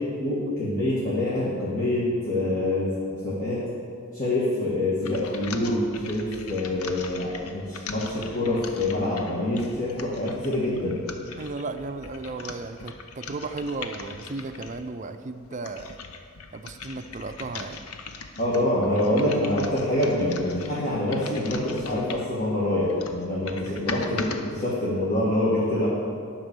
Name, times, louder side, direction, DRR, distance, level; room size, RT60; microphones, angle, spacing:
voice 1, 0.2-3.6 4.1-11.0 18.4-25.9, left 1 dB, 35° left, -8 dB, 1.8 m, -26 dB
sound 1, 5.0-14.9 15.4-22.4 22.8-24.4, left 4 dB, 80° left, 0.8 m, -40 dB
voice 2, 11.4-16.0 16.5-17.9 23.6-23.8, right 3 dB, 35° right, 9 dB, 0.5 m, -35 dB
11.0 x 6.1 x 6.8 m, 2.3 s
head